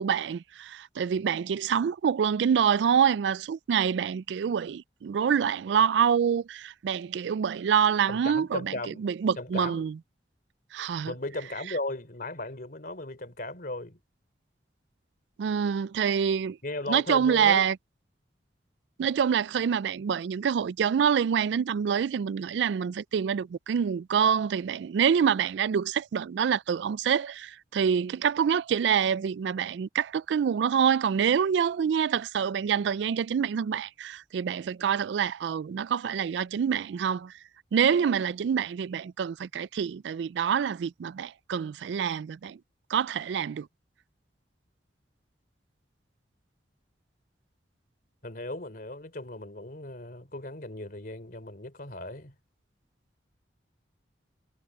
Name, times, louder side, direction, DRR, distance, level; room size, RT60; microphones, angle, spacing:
voice 1, 0.0-10.0 10.7-11.1 15.4-16.6 16.9-17.8 19.0-37.3 37.7-42.6 42.9-43.7, right 7 dB, 75° right, 0.3 m, -26 dB
voice 2, 8.1-9.0 9.4-9.9 11.1-14.0 16.6-17.7 48.2-52.4, left 2 dB, 55° left, 3.4 m, -36 dB
head